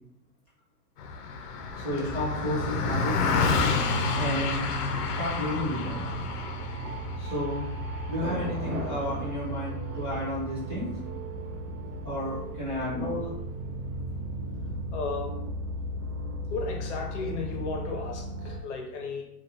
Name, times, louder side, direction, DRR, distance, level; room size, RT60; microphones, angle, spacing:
Car passing by, 1.0-10.6, left 4 dB, 85° left, 0.6 m, -30 dB
voice 1, 1.8-3.3 4.1-4.6 5.2-6.0 7.2-7.6 8.1-10.9 12.0-13.2, left 1 dB, 20° right, -10 dB, 0.4 m, -32 dB
sound 1, 2.0-18.6, right 1 dB, 90° right, 0.6 m, -36 dB
Thunder, 4.1-16.0 16.2-16.3, right 2 dB, 65° right, 0.9 m, -45 dB
voice 2, 12.9-13.3 14.9-15.3 16.5-19.2, left 3 dB, 50° left, 1 dB, 0.7 m, -34 dB
2.4 x 2.4 x 2.8 m, 0.82 s
hypercardioid pair, 145°, 46 cm